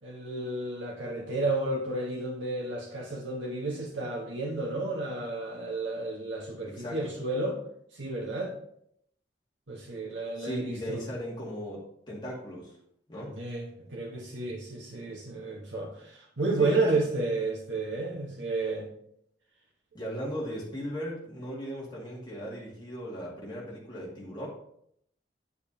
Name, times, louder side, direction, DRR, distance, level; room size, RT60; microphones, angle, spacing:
voice 1, 0.0-7.6 7.9-8.5 9.7-11.0 13.3-18.9, right 2 dB, 85° right, -2 dB, 1.3 m, -31 dB
voice 2, 6.7-7.1 10.4-12.7 13.1-13.3 16.6-16.9 19.9-24.5, equal, 25° left, -4 dB, 2.1 m, -37 dB
9.7 x 6.9 x 2.8 m, 0.72 s
head